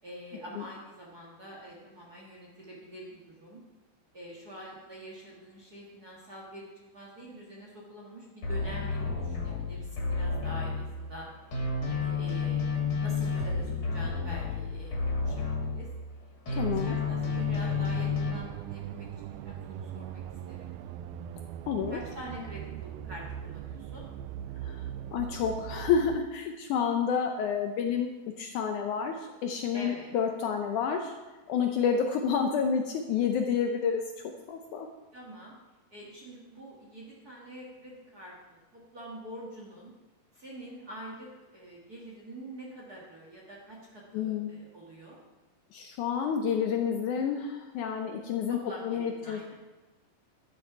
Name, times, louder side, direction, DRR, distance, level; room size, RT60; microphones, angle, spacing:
voice 1, 0.0-3.6 4.1-6.7 6.9-11.5 11.9-12.6 13.0-15.9 16.5-20.2 20.5-20.8 21.7-24.0 29.7-30.1 35.1-35.5 35.9-39.9 40.3-45.2 48.5-49.5, right 1 dB, 35° right, -3 dB, 1.6 m, -46 dB
sound 1, 8.4-11.2 11.5-16.2 16.5-18.3, left 4 dB, 35° left, 3.4 m, -31 dB
voice 2, 16.6-17.0 21.7-22.0 24.6-24.8 25.1-28.1 28.4-29.2 29.4-31.1 31.5-34.0 34.5-34.9 44.1-44.5 45.7-48.6 48.8-49.5, left 7 dB, 75° left, 4 dB, 1.9 m, -29 dB
sound 2, 17.1-26.2, right 10 dB, 90° right, 2.4 m, -40 dB
11.5 x 10.0 x 4.7 m, 1.2 s
omnidirectional pair, 4.1 m